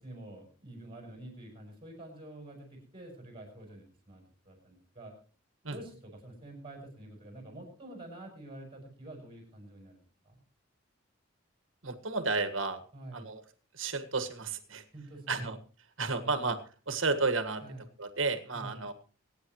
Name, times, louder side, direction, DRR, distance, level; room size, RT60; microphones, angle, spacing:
voice 1, 0.0-5.1 5.7-10.4 12.9-13.3 14.9-15.5 16.2-16.5 17.6-17.8 18.5-18.9, right 1 dB, 25° right, 2 dB, 6.8 m, -47 dB
voice 2, 11.8-12.8 13.1-13.4 13.7-14.8 15.3-15.6 16.0-16.6 16.9-18.9, right 3 dB, 75° right, 9 dB, 1.7 m, -32 dB
25.0 x 9.7 x 3.1 m, 0.38 s
head